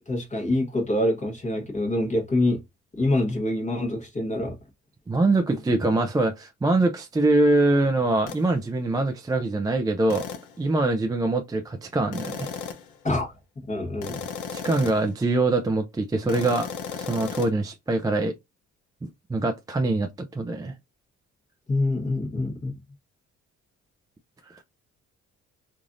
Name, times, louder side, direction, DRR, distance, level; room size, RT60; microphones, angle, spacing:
voice 1, 0.1-2.6 3.0-4.5 13.0-13.3 13.7-14.2 21.7-22.7, left 1 dB, 25° left, 1.2 m, -25 dB
voice 2, 5.1-10.3 10.6-12.5 14.5-18.3 19.3-20.7 24.5-24.6, right 2 dB, 15° right, 0.4 m, -24 dB
sound 1, 8.3-8.5 10.1-10.6 12.1-13.0 14.0-15.1 16.3-17.5, left 7 dB, 80° left, 0.7 m, -35 dB
3.2 x 2.5 x 2.5 m
cardioid pair, 90°, 30 cm